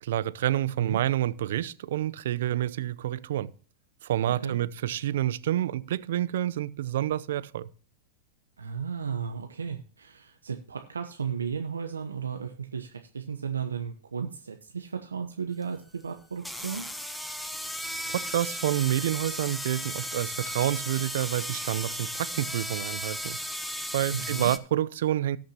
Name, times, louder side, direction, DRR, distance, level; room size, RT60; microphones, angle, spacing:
voice 1, 0.0-3.5 4.0-7.7 18.1-23.4 23.9-25.4, right 12 dB, 70° right, 0.6 m, -28 dB
voice 2, 8.6-16.8 24.1-24.5, right 6 dB, 85° right, 0.9 m, -34 dB
sound 1, 15.6-15.7 16.4-24.6, equal, ahead, 1.0 m, -35 dB
18.0 x 6.5 x 2.9 m
hypercardioid pair, 100°, 0 cm